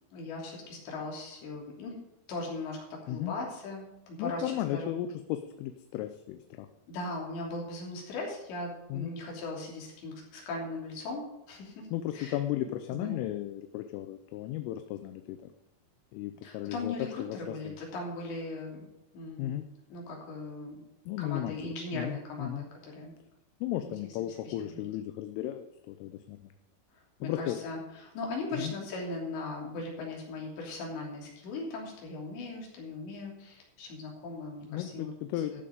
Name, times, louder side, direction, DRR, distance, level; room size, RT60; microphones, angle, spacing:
voice 1, 0.1-2.0 2.3-4.9 6.9-11.9 12.1-12.4 12.9-13.2 16.4-18.9 19.1-19.6 19.9-20.8 21.2-22.7 22.9-23.1 23.8-23.9 24.4-24.9 27.2-35.1 35.5-35.6, left 2 dB, 65° left, -1 dB, 5.1 m, -39 dB
voice 2, 4.2-6.7 8.9-9.1 11.9-15.4 16.1-16.9 17.2-17.8 19.4-19.7 21.1-22.6 23.6-26.5 27.2-27.6 28.5-28.7 34.7-35.6, left 13 dB, 85° left, 8 dB, 3.3 m, -35 dB
14.0 x 7.9 x 5.2 m, 0.94 s
omnidirectional pair, 5.7 m